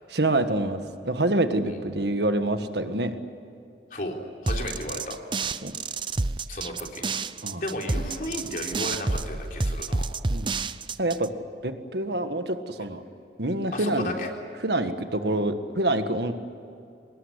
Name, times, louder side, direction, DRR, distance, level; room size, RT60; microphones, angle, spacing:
voice 1, 0.1-3.2 5.6-5.8 7.4-7.6 10.3-10.5 11.0-11.3 11.6-13.0 13.4-14.1 14.6-16.4, right 1 dB, 75° right, 8 dB, 1.7 m, -26 dB
voice 2, 4.4-5.2 6.5-7.2 7.5-10.1 13.7-14.3, left 1 dB, 50° left, 1 dB, 3.8 m, -33 dB
sound 1, 4.5-11.3, right 3 dB, 30° right, 0.6 m, -29 dB
24.5 x 20.0 x 9.9 m, 2.6 s
head